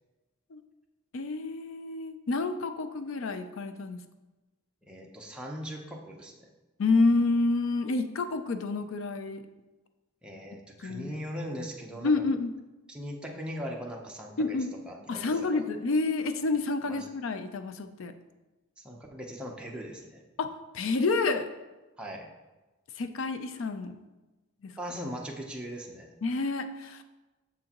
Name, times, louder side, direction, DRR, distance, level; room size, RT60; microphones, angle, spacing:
voice 1, 1.1-4.0 6.8-9.4 10.8-11.1 12.0-12.5 14.4-14.7 15.1-18.1 20.4-21.5 23.0-24.0 24.6-24.7 26.2-27.0, left 3 dB, 70° left, 9 dB, 0.5 m, -29 dB
voice 2, 4.9-6.3 10.2-12.2 12.9-14.6 14.9-15.6 16.8-17.0 18.8-20.2 22.0-22.3 24.8-26.1, equal, 5° right, -1 dB, 0.7 m, -39 dB
7.0 x 6.2 x 3.0 m, 1.1 s
head